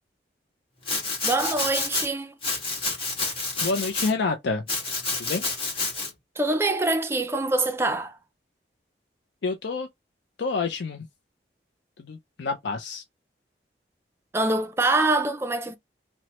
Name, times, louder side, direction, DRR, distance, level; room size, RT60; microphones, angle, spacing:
Domestic sounds home sounds, 0.8-2.1 2.4-4.1 4.7-6.1, left 3 dB, 30° left, 1.4 m, -29 dB
voice 1, 1.2-2.4 6.4-8.2 14.3-15.8, right 2 dB, 15° right, 0.3 m, -24 dB
voice 2, 3.6-4.6 5.2-5.4 9.4-9.9 10.4-11.1 12.0-13.0, left 4 dB, 75° left, 0.4 m, -28 dB
2.9 x 2.0 x 2.8 m
head